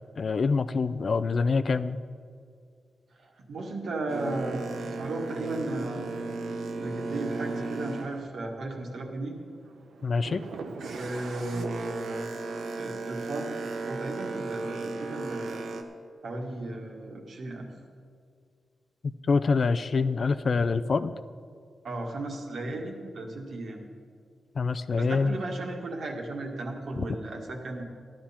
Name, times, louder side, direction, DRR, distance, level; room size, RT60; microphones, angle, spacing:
voice 1, 0.2-2.0 10.0-10.4 19.0-21.1 24.6-25.4 27.0-27.1, left 4 dB, 45° left, 12 dB, 0.4 m, -25 dB
voice 2, 3.2-6.3 6.8-9.4 10.9-12.4 12.8-13.5 13.8-15.6 16.2-17.7 21.8-23.8 24.9-27.8, right 2 dB, 70° right, 1 dB, 1.8 m, -35 dB
Boat Water vehicle, 4.1-9.1 9.5-15.8, right 3 dB, 90° right, 1.0 m, -36 dB
14.0 x 11.5 x 4.3 m, 2.2 s
wide cardioid pair, 125°, 0 cm